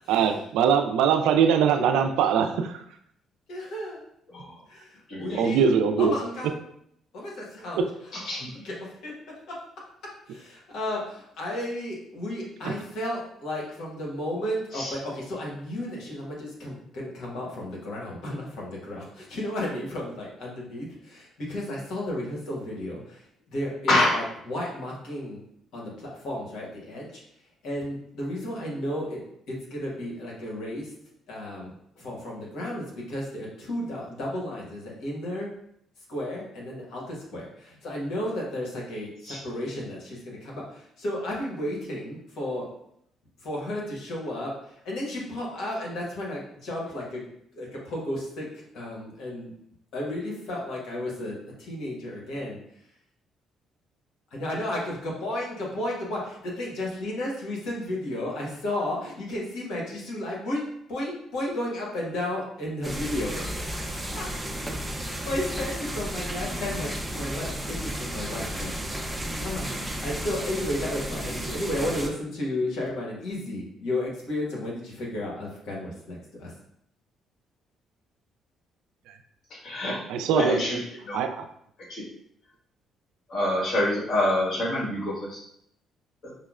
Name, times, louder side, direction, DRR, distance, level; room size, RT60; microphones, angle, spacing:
voice 1, 0.1-2.8 5.3-6.1 12.6-12.7 79.1-79.2 80.1-80.6 81.1-81.3, right 7 dB, 85° right, 7 dB, 0.3 m, -22 dB
voice 2, 3.5-4.0 4.7-5.7 6.0-6.5 7.1-8.3 8.6-9.1 9.5-9.6 10.3-25.4 25.7-27.2 27.6-29.2 29.5-30.9 31.3-35.5 36.1-42.7 43.4-47.2 47.5-49.5 49.9-52.6 54.3-64.3 65.0-76.5, left 1 dB, 75° left, -3 dB, 1.1 m, -33 dB
voice 3, 5.1-5.7 8.1-8.6 14.7-15.0 23.9-24.2 39.2-39.4 79.5-80.0 80.3-81.2 81.8-82.1 83.3-85.4 86.2-86.3, left 1 dB, 60° left, -4 dB, 1.5 m, -27 dB
sound 1, 62.8-72.1, equal, 10° right, 0.6 m, -33 dB
5.4 x 2.1 x 2.4 m, 0.71 s
supercardioid pair, 70°, 0 cm